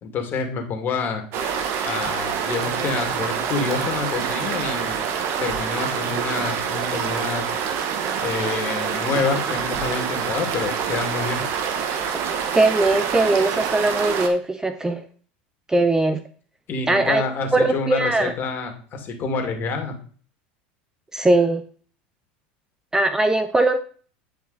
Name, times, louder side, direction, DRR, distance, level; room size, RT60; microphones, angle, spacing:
voice 1, 0.0-1.2 1.8-5.0 5.4-7.5 8.2-11.4 16.7-20.0, left 4 dB, 40° left, 4 dB, 2.4 m, -27 dB
sound 1, 1.3-14.3, right 7 dB, 55° right, 1.5 m, -26 dB
voice 2, 12.5-15.0 15.7-16.2 16.9-17.2 17.5-18.3 21.1-21.6 22.9-23.8, right 2 dB, 10° right, 9 dB, 0.7 m, -20 dB
10.0 x 5.0 x 4.1 m, 0.43 s
hypercardioid pair, 95°, 5 cm